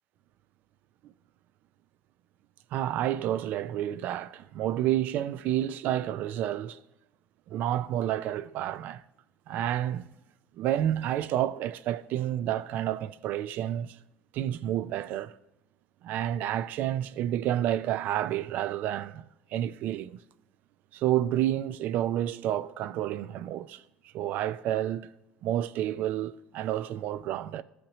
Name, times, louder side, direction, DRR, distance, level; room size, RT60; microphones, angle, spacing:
voice 1, 2.7-6.8 7.5-9.0 9.5-10.1 10.6-14.0 14.3-15.3 16.0-19.2 19.5-20.2 20.9-23.8 24.1-25.1 25.4-27.6, right 12 dB, 55° right, 0.4 m, -30 dB
15.5 x 5.8 x 3.0 m
cardioid pair, 125°, 3 cm